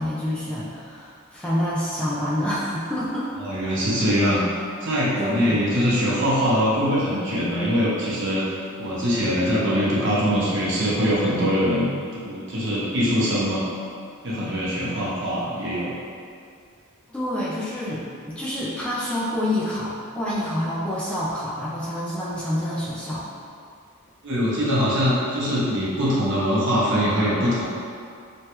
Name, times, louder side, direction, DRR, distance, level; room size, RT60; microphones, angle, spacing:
voice 1, 0.0-3.3 5.2-5.6 17.1-23.3, left 1 dB, 5° left, -8 dB, 0.3 m, -27 dB
voice 2, 3.4-4.4 4.8-8.4 8.8-13.7 14.2-15.9 24.2-27.6, equal, 55° right, -7 dB, 0.8 m, -22 dB
3.1 x 2.3 x 2.9 m, 2.3 s
head